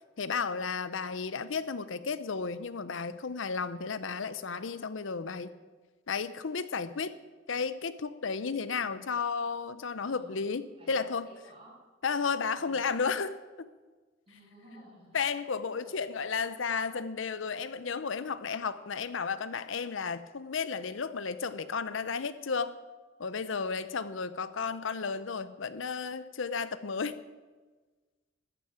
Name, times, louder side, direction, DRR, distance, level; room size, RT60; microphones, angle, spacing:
voice 1, 0.2-5.5 6.1-7.2 7.5-11.3 12.0-13.7 15.1-22.8 23.2-27.2, left 5 dB, 70° left, 13 dB, 0.7 m, -33 dB
voice 2, 10.0-10.4 10.8-11.8 12.6-12.9 14.3-15.2 15.8-16.0, right 1 dB, 30° right, -3 dB, 6.5 m, -54 dB
13.5 x 9.3 x 8.7 m, 1.3 s
head